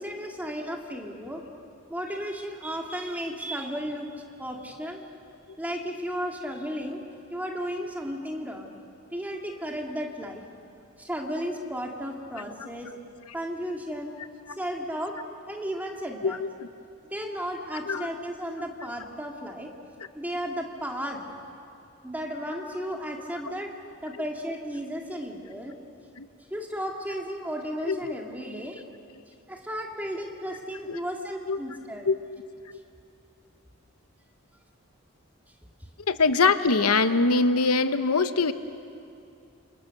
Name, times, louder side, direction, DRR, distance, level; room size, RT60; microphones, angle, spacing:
voice 1, 0.0-1.4 1.9-4.1 4.4-5.0 5.6-7.0 7.3-8.7 9.1-10.4 11.0-12.9 13.3-14.1 14.6-15.1 15.5-16.4 17.1-19.7 20.1-21.2 22.0-23.7 24.0-25.7 26.5-28.8 29.5-32.1, equal, 5° right, 0 dB, 2.3 m, -34 dB
voice 2, 16.2-16.7 17.9-18.1 26.2-26.3 27.9-28.2 30.8-31.0 31.5-31.6 32.0-32.1 36.1-38.5, left 4 dB, 90° left, 10 dB, 1.0 m, -23 dB
29.0 x 26.5 x 6.7 m, 2.5 s
head